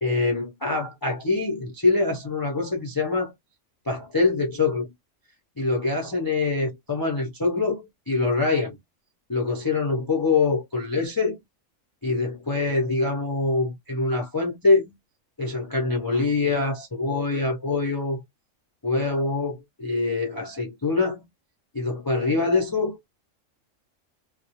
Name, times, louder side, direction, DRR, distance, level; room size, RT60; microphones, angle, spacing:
voice 1, 0.0-3.3 3.9-4.9 5.6-8.8 9.3-11.4 12.0-14.9 15.4-18.2 18.8-21.2 21.7-23.1, left 3 dB, 35° left, 0.3 m, -24 dB
2.3 x 2.1 x 2.8 m
omnidirectional pair, 1.3 m